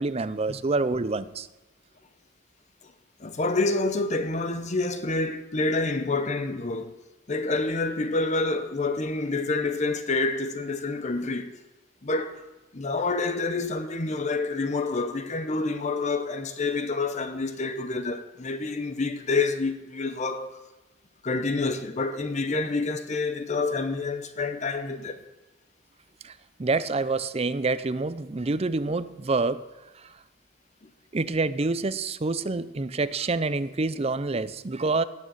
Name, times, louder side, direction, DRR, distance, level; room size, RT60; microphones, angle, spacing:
voice 1, 0.0-1.5 26.2-26.3 26.6-29.6 30.0-30.1 31.1-35.0, right 3 dB, 30° right, 0.6 m, -27 dB
voice 2, 3.2-7.0 7.3-11.6 12.0-12.4 12.7-20.6 21.2-25.2, left 3 dB, 35° left, 0.8 m, -28 dB
18.0 x 6.4 x 8.9 m
head